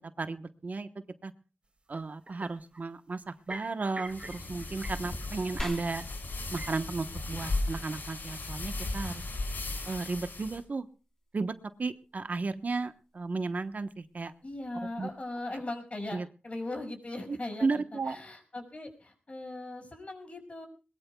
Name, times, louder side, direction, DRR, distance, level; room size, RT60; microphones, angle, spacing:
voice 1, 0.2-0.9 1.2-1.3 1.9-6.0 6.5-9.2 9.9-10.9 11.3-11.5 11.8-14.3 15.0-15.1 16.1-16.3 17.6-18.2, right 3 dB, 55° right, 9 dB, 1.1 m, -34 dB
sound 1, 2.0-2.1 2.3-2.8 3.3-5.4 5.7-6.1 6.4-7.3 7.6-7.8 8.1-8.4 8.7-9.3, right 2 dB, 30° right, 3.8 m, -46 dB
sound 2, 4.1-10.6, left 2 dB, 75° left, 5.3 m, -36 dB
sound 3, 5.6-15.6, left 1 dB, 15° left, 3.9 m, -49 dB
voice 2, 14.4-20.7, left 2 dB, 40° left, 4 dB, 5.8 m, -39 dB
21.5 x 21.0 x 2.3 m, 0.34 s
wide cardioid pair, 80°, 3 cm